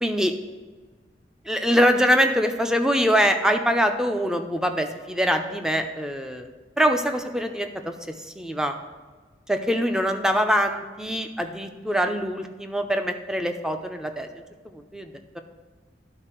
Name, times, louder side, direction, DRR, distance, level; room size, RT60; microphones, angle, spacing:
voice 1, 0.0-0.3 1.5-6.5 6.8-7.7 8.4-8.7 9.5-14.3 14.9-15.1, equal, 5° right, 6 dB, 0.5 m, -23 dB
12.0 x 4.1 x 4.4 m, 1.4 s
head